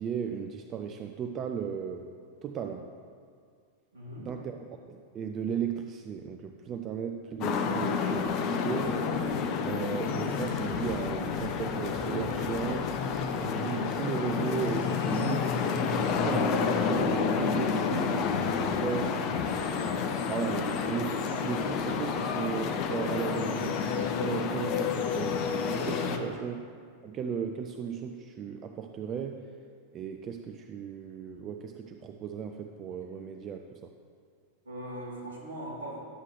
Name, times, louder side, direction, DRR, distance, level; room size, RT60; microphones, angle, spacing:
voice 1, 0.0-2.1 2.4-2.9 4.2-4.6 4.9-9.0 9.6-12.9 13.3-15.5 15.9-19.2 20.3-21.1 21.4-25.5 25.8-26.6 27.0-29.4 29.9-33.9, right 7 dB, 30° right, 5 dB, 0.4 m, -36 dB
voice 2, 3.9-4.3 20.5-20.8 26.0-26.3 34.6-36.0, equal, 65° right, -4 dB, 2.2 m, -40 dB
sound 1, 7.4-26.2, left 6 dB, 40° left, 0.6 m, -29 dB
sound 2, 8.7-26.4, left 3 dB, 55° left, 1.2 m, -51 dB
11.5 x 7.5 x 3.2 m, 2.1 s
figure-of-eight pair, 90°, 0 cm